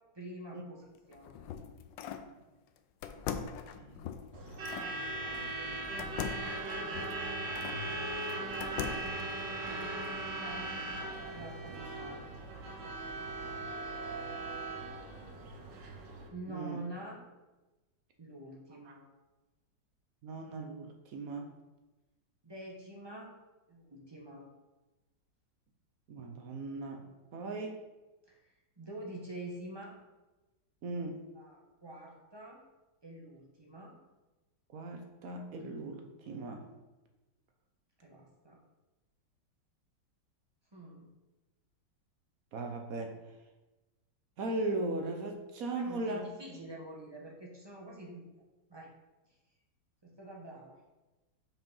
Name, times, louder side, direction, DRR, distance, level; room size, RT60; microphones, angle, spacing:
voice 1, 0.1-1.4 4.7-5.5 6.0-6.7 10.4-12.2 16.3-17.2 18.2-19.1 22.4-23.3 23.7-24.5 28.3-30.0 31.3-32.6 33.0-34.0 38.0-38.6 40.7-41.1 45.7-48.3 48.7-48.9 50.0-50.8, right 1 dB, 20° right, -2 dB, 0.8 m, -47 dB
sound 1, 0.9-2.3 3.0-4.9 6.0-7.8 8.3-9.2, left 7 dB, 80° left, 1.3 m, -41 dB
voice 2, 3.4-4.0 9.7-9.9 16.5-16.8 20.2-21.5 26.1-27.0 27.3-27.8 30.8-31.2 34.7-36.7 42.5-43.2 44.4-46.2, right 2 dB, 60° right, 4 dB, 1.1 m, -38 dB
Truck / Alarm, 4.3-16.3, right 2 dB, 75° right, 1.6 m, -39 dB
5.6 x 5.0 x 5.4 m, 1.1 s
omnidirectional pair, 2.0 m